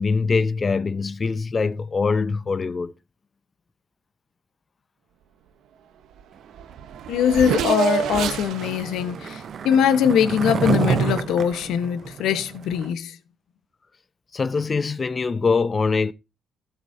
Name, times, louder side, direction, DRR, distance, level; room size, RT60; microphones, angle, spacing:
voice 1, 0.0-2.9 14.3-16.1, left 4 dB, 35° left, 0.8 m, -23 dB
Race car auto racing / Accelerating revving vroom, 6.2-6.3 6.5-10.5, right 9 dB, 80° right, 1.0 m, -29 dB
voice 2, 7.1-13.2, left 8 dB, 85° left, 1.1 m, -22 dB
Skateboard, 7.5-12.9, right 6 dB, 50° right, 0.7 m, -28 dB
15.5 x 8.2 x 2.7 m
cardioid pair, 90°, 0 cm